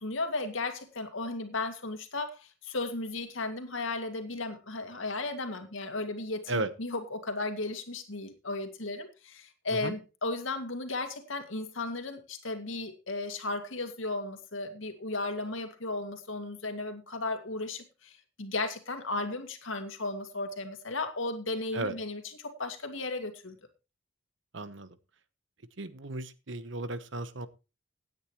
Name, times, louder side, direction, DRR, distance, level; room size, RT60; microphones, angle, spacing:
voice 1, 0.0-23.6, left 2 dB, 85° left, 6 dB, 2.3 m, -35 dB
voice 2, 24.5-24.9 25.8-27.5, right 2 dB, 70° right, 13 dB, 1.1 m, -35 dB
17.5 x 9.3 x 3.1 m, 0.29 s
head